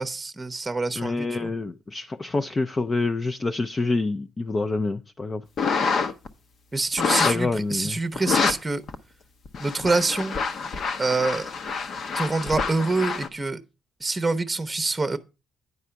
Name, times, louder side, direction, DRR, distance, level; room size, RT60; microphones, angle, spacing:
voice 1, 0.0-1.5 6.7-8.8 9.6-10.4 11.0-11.5 12.1-13.6 14.0-15.2, right 3 dB, 20° right, 0.9 m, -26 dB
voice 2, 1.0-5.4 7.2-8.0, left 3 dB, 30° left, 0.5 m, -27 dB
sound 1, 5.6-6.3 7.0-7.5 8.2-8.5 8.9-9.0 9.5-13.3, left 5 dB, 60° left, 1.0 m, -26 dB
9.6 x 4.8 x 5.7 m
cardioid pair, 90°, 0 cm